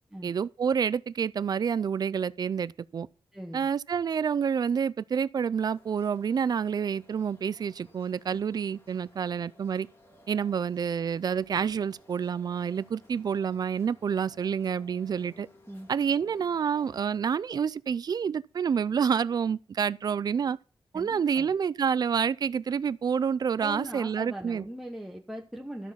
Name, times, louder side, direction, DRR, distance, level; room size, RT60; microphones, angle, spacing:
voice 1, 0.2-3.1 3.5-9.9 10.3-15.5 15.9-20.6 20.9-24.7, right 7 dB, 50° right, 0.4 m, -28 dB
voice 2, 3.3-3.7 15.7-15.9 20.9-21.5 23.6-25.9, right 1 dB, 5° right, 1.0 m, -40 dB
sound 1, 5.7-17.2, left 1 dB, 30° left, 2.1 m, -58 dB
12.5 x 7.0 x 5.7 m
wide cardioid pair, 165°, 9 cm